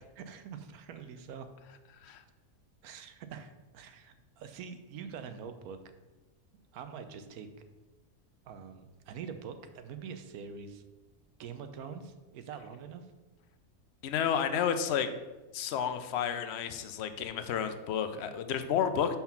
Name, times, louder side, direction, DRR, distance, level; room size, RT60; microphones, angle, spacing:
voice 1, 0.2-1.5 2.8-5.8 6.7-7.5 8.4-10.8 11.4-13.0 14.2-14.4 18.2-18.4, right 6 dB, 85° right, 9 dB, 1.1 m, -45 dB
voice 2, 14.0-15.1 15.5-19.2, left 8 dB, 60° left, 9 dB, 0.7 m, -31 dB
5.7 x 4.4 x 5.8 m, 1.1 s
omnidirectional pair, 1.6 m